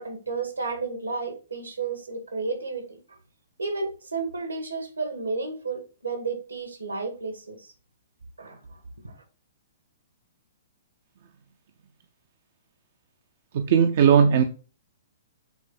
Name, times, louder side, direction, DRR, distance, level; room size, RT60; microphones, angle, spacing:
voice 1, 0.0-3.0 3.6-7.7 8.4-8.8 9.0-9.1, right 4 dB, 80° right, 1.9 m, -32 dB
voice 2, 13.5-14.4, right 7 dB, 50° right, 0.6 m, -18 dB
7.0 x 4.0 x 4.3 m
figure-of-eight pair, 115°, 0 cm